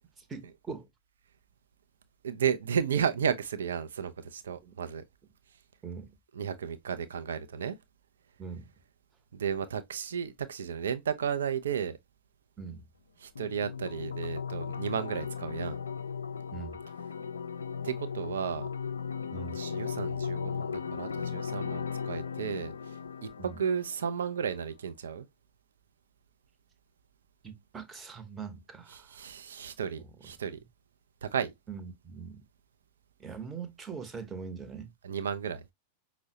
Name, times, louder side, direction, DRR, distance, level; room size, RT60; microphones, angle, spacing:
voice 1, 0.2-0.9 4.6-4.8 5.8-6.1 8.4-8.7 12.6-12.9 16.5-16.8 19.3-19.6 23.4-23.6 27.4-29.2 30.0-30.1 31.7-32.5 33.2-34.9, right 5 dB, 15° right, 0.8 m, -42 dB
voice 2, 2.2-5.0 6.3-7.8 9.3-12.0 13.2-15.8 17.8-18.7 19.5-25.3 28.9-30.6 31.2-31.5 35.0-35.6, right 7 dB, 65° right, 0.4 m, -33 dB
sound 1, 13.4-24.4, left 6 dB, 75° left, 0.3 m, -37 dB
5.3 x 2.0 x 2.7 m
figure-of-eight pair, 90°, 0 cm